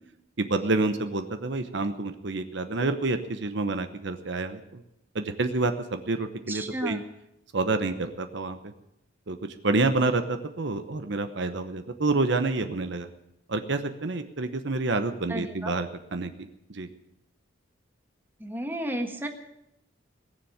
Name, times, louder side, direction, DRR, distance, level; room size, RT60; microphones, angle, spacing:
voice 1, 0.4-4.8 5.1-7.0 7.5-8.6 9.3-9.4 9.6-13.1 13.5-16.3 16.7-16.9, right 3 dB, 60° right, 8 dB, 0.9 m, -28 dB
voice 2, 6.5-7.0 15.3-15.7 18.4-19.3, right 1 dB, 10° right, 4 dB, 1.4 m, -32 dB
19.0 x 7.1 x 9.3 m, 0.86 s
head